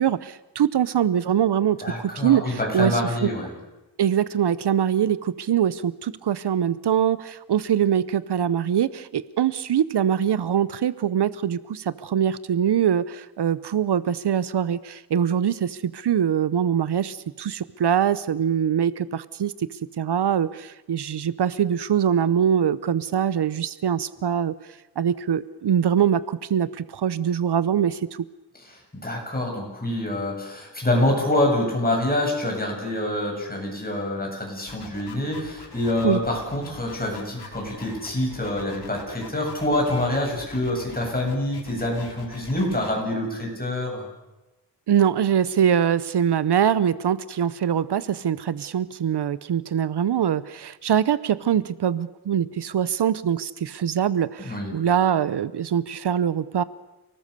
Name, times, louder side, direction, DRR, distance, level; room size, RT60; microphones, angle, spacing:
voice 1, 0.0-3.3 4.0-19.5 20.0-24.5 25.0-28.2 36.0-36.2 44.9-56.6, right 9 dB, 75° right, 17 dB, 0.8 m, -23 dB
voice 2, 1.8-3.5 29.0-44.0 54.4-54.8, left 1 dB, 20° left, 0 dB, 7.9 m, -26 dB
sound 1, 34.7-42.9, left 4 dB, 70° left, 5.3 m, -43 dB
29.0 x 19.0 x 6.8 m, 1.0 s
wide cardioid pair, 95°, 41 cm